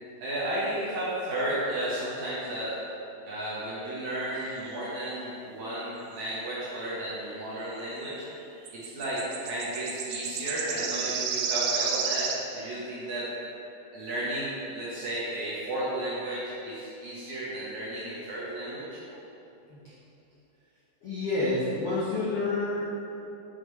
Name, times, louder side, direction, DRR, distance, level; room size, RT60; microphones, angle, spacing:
voice 1, 0.2-2.8 3.3-8.3 8.7-13.3 13.9-19.0, right 1 dB, 65° right, -9 dB, 2.1 m, -33 dB
sound 1, 4.7-4.9 8.7-12.5, right 6 dB, 90° right, 1.9 m, -31 dB
voice 2, 21.0-22.8, left 2 dB, 80° left, -10 dB, 1.2 m, -28 dB
8.5 x 5.7 x 3.2 m, 2.9 s
omnidirectional pair, 4.3 m